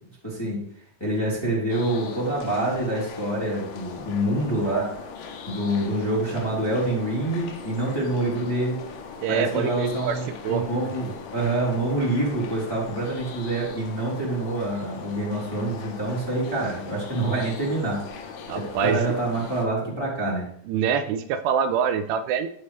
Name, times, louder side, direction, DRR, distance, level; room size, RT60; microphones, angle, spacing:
voice 1, 0.2-0.6 1.0-4.9 5.5-8.8 9.3-20.5, right 1 dB, 5° left, -6 dB, 2.2 m, -26 dB
sound 1, 1.7-19.7, left 6 dB, 85° left, 3.7 m, -40 dB
voice 2, 9.2-10.2 10.4-10.6 18.5-19.0 20.7-22.5, right 7 dB, 85° right, 8 dB, 3.0 m, -25 dB
13.5 x 5.5 x 3.3 m, 0.63 s
omnidirectional pair, 5.5 m